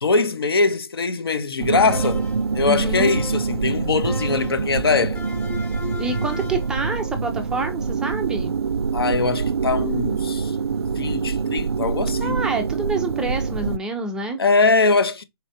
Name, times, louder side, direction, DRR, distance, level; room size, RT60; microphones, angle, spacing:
voice 1, 0.0-2.3 2.5-5.2 8.9-10.5 11.0-12.4 14.4-15.2, left 4 dB, 65° left, 0.8 m, -21 dB
sound 1, 1.6-13.8, right 5 dB, 75° right, 0.4 m, -25 dB
sound 2, 1.9-2.5 3.0-3.6 4.1-4.7 5.2-6.7, left 3 dB, 15° left, 1.0 m, -36 dB
voice 2, 2.6-3.2 6.0-8.5 12.2-14.4, right 3 dB, 5° right, 0.4 m, -27 dB
4.2 x 3.1 x 2.6 m
figure-of-eight pair, 135°, 13 cm